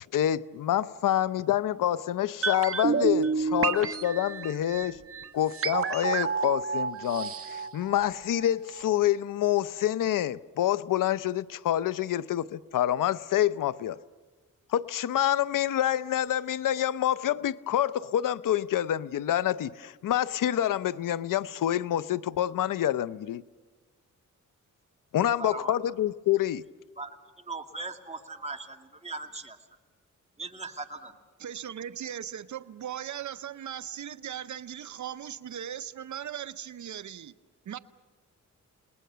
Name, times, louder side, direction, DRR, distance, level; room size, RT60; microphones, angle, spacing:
voice 1, 0.1-5.0 5.3-14.0 14.7-23.4 25.1-26.6, left 11 dB, 90° left, 0.7 m, -27 dB
sound 1, 2.4-8.5 8.7-8.8, right 5 dB, 45° right, 1.2 m, -30 dB
voice 2, 25.4-25.8 27.0-27.1 27.5-29.6 30.4-31.1, right 3 dB, 20° right, 2.3 m, -38 dB
voice 3, 31.4-37.3 37.7-37.8, right 9 dB, 65° right, 0.7 m, -38 dB
29.5 x 20.0 x 6.9 m
cardioid pair, 100°, 31 cm